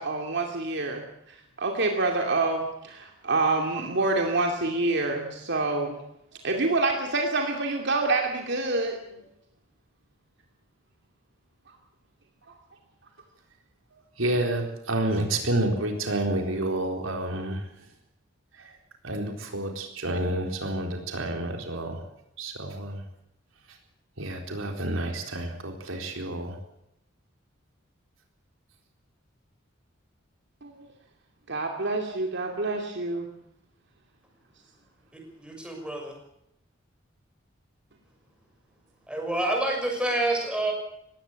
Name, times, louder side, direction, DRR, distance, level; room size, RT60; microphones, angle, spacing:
voice 1, 0.0-6.0 6.4-9.2 12.5-12.6 30.6-30.9 31.5-33.3, right 3 dB, 60° right, 2 dB, 2.6 m, -27 dB
voice 2, 13.9-17.7 18.5-18.8 19.0-22.0 22.4-23.0 24.2-26.6, right 1 dB, 90° right, 3 dB, 4.1 m, -29 dB
voice 3, 35.4-36.2 39.1-40.7, right 1 dB, 5° right, 2 dB, 6.3 m, -27 dB
20.0 x 17.0 x 8.2 m, 0.79 s
head